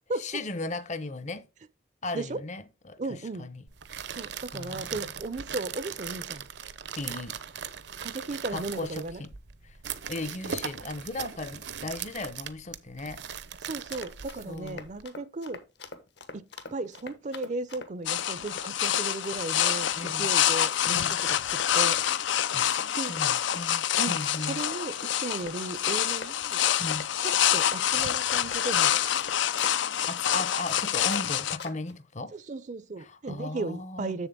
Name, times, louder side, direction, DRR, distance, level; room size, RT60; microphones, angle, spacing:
voice 1, 0.1-1.5 2.0-3.6 4.0-4.1 4.5-5.1 6.9-7.4 8.5-9.3 9.6-9.8 10.1-13.2 14.5-14.9 19.9-20.3 20.8-21.2 21.9-22.2 22.5-24.6 26.8-27.1 30.1-32.3 33.0-34.2, left 2 dB, 40° left, 0.8 m, -37 dB
voice 2, 3.0-3.5 4.1-6.5 8.0-9.2 13.6-15.6 16.3-22.0 23.0-23.2 24.0-26.6 27.2-29.0 32.3-34.3, right 3 dB, 40° right, 0.5 m, -36 dB
sound 1, 3.7-15.0, right 7 dB, 70° right, 0.8 m, -39 dB
Run, 13.7-31.3 31.6-31.9, left 4 dB, 70° left, 1.2 m, -43 dB
sound 2, 18.1-31.6, left 10 dB, 85° left, 0.5 m, -27 dB
7.3 x 7.1 x 3.6 m
head